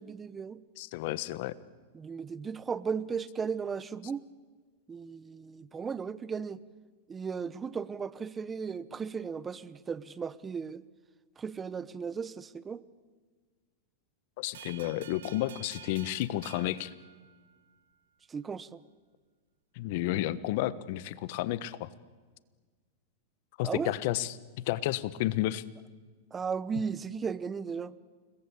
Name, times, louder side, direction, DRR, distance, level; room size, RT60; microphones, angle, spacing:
voice 1, 0.0-0.6 1.9-4.2 4.9-6.6 7.1-10.8 11.4-12.8 18.3-18.8 23.6-23.9 26.3-27.9, right 6 dB, 20° right, 17 dB, 1.0 m, -36 dB
voice 2, 0.8-1.5 14.4-16.9 19.7-21.9 23.6-24.4 24.6-25.6, left 15 dB, 60° left, 16 dB, 1.2 m, -31 dB
sound 1, 14.5-17.8, right 10 dB, 80° right, 1.8 m, -50 dB
29.0 x 21.5 x 8.5 m, 1.5 s
hypercardioid pair, 120°, 0 cm